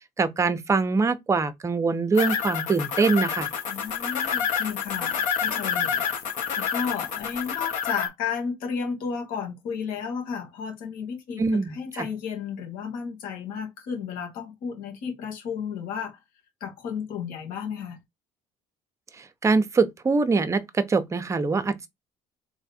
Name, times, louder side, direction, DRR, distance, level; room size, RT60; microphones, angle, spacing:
voice 1, 0.2-3.5 11.4-12.1 19.2-21.9, right 4 dB, 20° right, 0.7 m, -23 dB
sound 1, 2.1-8.1, left 7 dB, 60° left, 1.6 m, -28 dB
voice 2, 3.7-6.1 6.6-16.2 16.6-18.0, left 6 dB, 75° left, 1.9 m, -33 dB
3.5 x 3.5 x 4.3 m
cardioid pair, 135°, 15 cm